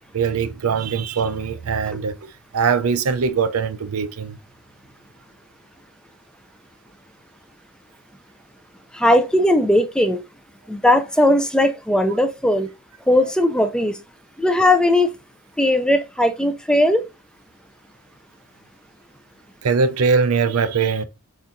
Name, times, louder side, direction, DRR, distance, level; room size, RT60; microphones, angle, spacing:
voice 1, 0.1-2.2 2.5-4.4 19.6-21.0, right 5 dB, 85° right, 0.5 m, -21 dB
voice 2, 8.9-10.2 10.7-12.7 13.1-14.0 14.4-15.1 15.6-17.0, left 1 dB, 5° left, 0.4 m, -18 dB
4.6 x 4.2 x 2.5 m
head